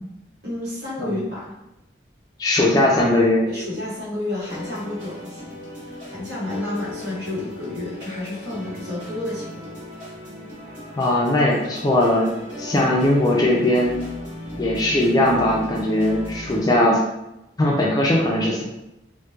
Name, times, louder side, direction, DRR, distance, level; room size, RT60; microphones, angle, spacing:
voice 1, 0.4-1.5 3.5-5.5 6.1-9.8, left 1 dB, 65° right, -6 dB, 1.1 m, -30 dB
voice 2, 2.4-3.5 11.0-12.3 12.6-14.0 14.6-17.0 17.6-18.6, left 1 dB, 20° left, -2 dB, 0.3 m, -19 dB
sound 1, 4.4-16.8, left 1 dB, 45° right, 1.4 m, -37 dB
2.9 x 2.1 x 2.3 m, 0.90 s
head